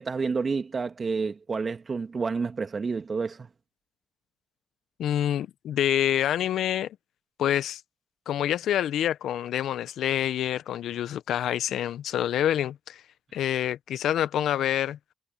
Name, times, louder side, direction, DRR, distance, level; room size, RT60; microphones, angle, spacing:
voice 1, 0.0-3.5, right 4 dB, 45° right, 2.3 m, -29 dB
voice 2, 5.0-7.0 7.4-7.8 8.3-13.0 13.3-15.0, left 11 dB, 75° left, 1.2 m, -27 dB
hypercardioid pair, 45°, 0 cm